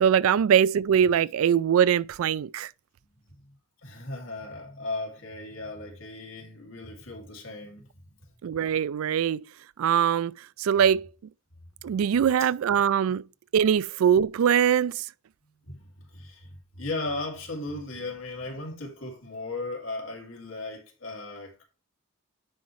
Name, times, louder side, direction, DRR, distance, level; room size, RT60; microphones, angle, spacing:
voice 1, 0.0-2.7 8.4-9.4 9.8-10.3 10.6-11.1 11.8-13.2 13.5-15.0, right 8 dB, 85° right, 0.3 m, -22 dB
voice 2, 3.8-7.9 15.7-16.5 16.7-21.6, left 2 dB, 70° left, 2.2 m, -36 dB
9.7 x 4.6 x 3.1 m
head